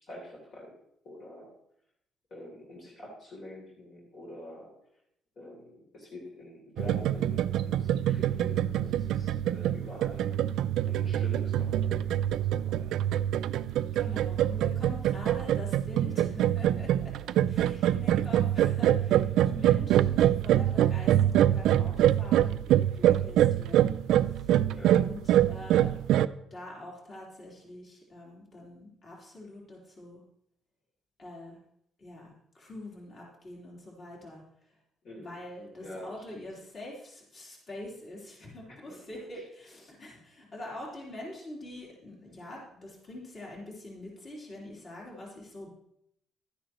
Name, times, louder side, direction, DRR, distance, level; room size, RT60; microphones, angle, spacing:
voice 1, 0.0-0.7 1.0-1.5 2.3-4.7 5.3-10.4 10.9-12.8 17.7-17.8 24.7-24.9 25.3-25.5 35.0-35.3 35.8-36.4 38.7-39.0 39.3-39.4, left 1 dB, 55° left, -4 dB, 3.2 m, -46 dB
sound 1, 6.8-26.3, right 11 dB, 80° right, 0.3 m, -25 dB
voice 2, 13.9-17.1 17.5-24.0 24.3-24.5 24.9-25.2 25.5-26.0 26.5-30.2 31.2-31.6 32.0-34.4 35.2-45.7, left 1 dB, 40° left, -4 dB, 3.6 m, -44 dB
12.0 x 10.0 x 3.1 m, 0.75 s
cardioid pair, 125°, 0 cm